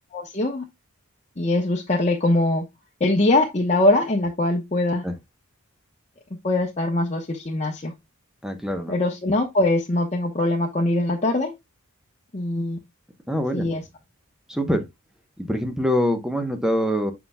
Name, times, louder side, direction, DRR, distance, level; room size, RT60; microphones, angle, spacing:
voice 1, 0.1-0.6 1.4-2.6 3.0-5.0 6.4-7.9 8.9-11.5 12.3-12.8 13.5-13.8, left 2 dB, 30° left, 1.0 m, -22 dB
voice 2, 8.4-8.9 13.3-13.6 14.5-14.9 15.4-17.1, equal, 5° right, 0.9 m, -24 dB
7.6 x 5.7 x 2.2 m
head